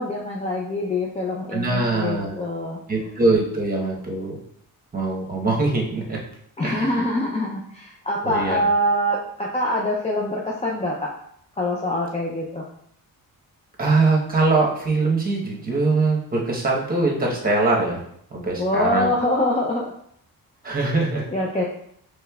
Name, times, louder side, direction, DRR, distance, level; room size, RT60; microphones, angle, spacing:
voice 1, 0.0-2.8 6.6-11.1 11.6-12.7 18.6-19.9 21.3-21.6, left 1 dB, 20° left, -3 dB, 0.5 m, -24 dB
voice 2, 1.5-2.4 2.9-4.4 4.9-6.2 6.6-6.9 8.2-8.6 13.8-18.0 18.3-19.1 20.6-21.2, right 3 dB, 25° right, -2 dB, 1.0 m, -22 dB
5.1 x 3.3 x 2.3 m, 0.69 s
wide cardioid pair, 125°, 36 cm